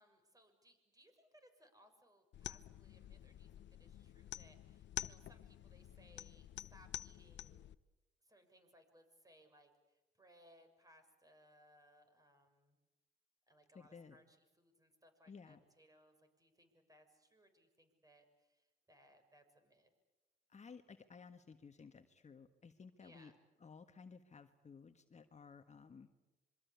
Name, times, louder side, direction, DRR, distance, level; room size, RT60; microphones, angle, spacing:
voice 1, 0.0-7.7 8.2-12.8 13.5-19.9 23.0-23.3, equal, 15° right, 7 dB, 6.6 m, -67 dB
sound 1, 2.3-7.7, left 11 dB, 65° left, 0.8 m, -49 dB
voice 2, 13.7-14.2 15.3-15.6 20.5-23.3 23.6-26.2, left 5 dB, 35° left, 8 dB, 1.6 m, -56 dB
26.5 x 24.0 x 8.4 m, 1.1 s
cardioid pair, 90°, 20 cm